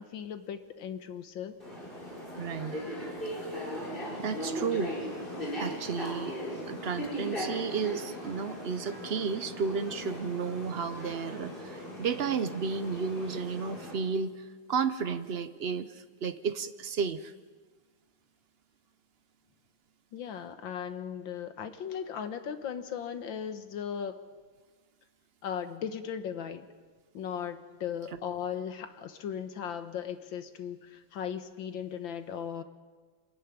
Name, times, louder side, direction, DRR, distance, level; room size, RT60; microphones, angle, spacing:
voice 1, 0.0-1.6 20.1-24.2 25.4-26.7 27.1-32.6, left 8 dB, 70° left, 9 dB, 1.9 m, -37 dB
sound 1, 1.6-13.9, equal, 25° left, 6.5 m, -38 dB
voice 2, 2.4-2.8 4.2-5.0 5.6-6.3 6.7-17.3, right 5 dB, 70° right, 11 dB, 0.5 m, -33 dB
27.0 x 14.0 x 9.7 m, 1.5 s
omnidirectional pair, 2.2 m